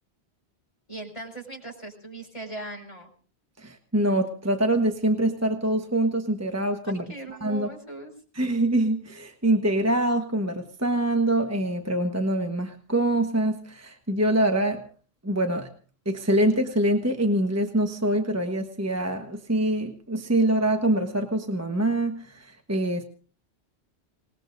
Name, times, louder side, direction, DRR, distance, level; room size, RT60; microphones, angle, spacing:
voice 1, 0.9-3.1 6.8-8.1, right 1 dB, 30° left, 0 dB, 5.3 m, -39 dB
voice 2, 3.6-7.0 7.4-7.7 8.4-14.8 15.2-15.7 16.0-23.0, right 1 dB, 15° right, 5 dB, 1.1 m, -24 dB
26.5 x 20.0 x 2.6 m, 0.40 s
omnidirectional pair, 1.1 m